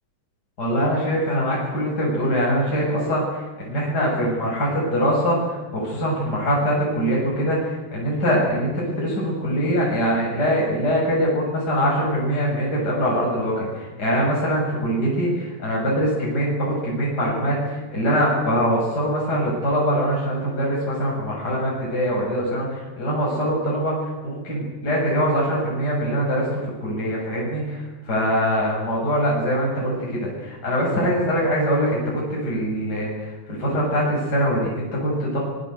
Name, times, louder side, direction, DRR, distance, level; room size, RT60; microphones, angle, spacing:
voice 1, 0.6-35.4, equal, 25° left, -4 dB, 7.2 m, -23 dB
25.5 x 22.0 x 8.1 m, 1.2 s
omnidirectional pair, 4.4 m